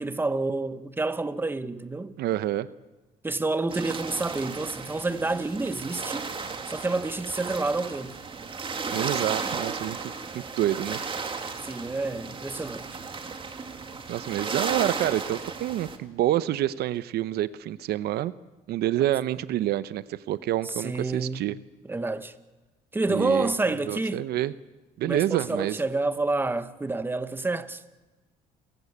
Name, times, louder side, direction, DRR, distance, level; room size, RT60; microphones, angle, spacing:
voice 1, 0.0-2.1 3.2-6.3 6.7-8.2 11.6-12.9 20.7-21.4 21.9-22.3 22.9-24.2 25.0-28.0, right 3 dB, 10° right, 1.2 m, -28 dB
voice 2, 2.2-2.7 8.9-11.0 14.1-18.3 18.7-21.6 23.1-23.5 23.8-24.5 25.0-25.8, right 13 dB, 70° right, 0.8 m, -28 dB
sound 1, 3.7-16.0, right 4 dB, 30° right, 2.4 m, -34 dB
28.5 x 15.0 x 8.6 m
cardioid pair, 110°, 17 cm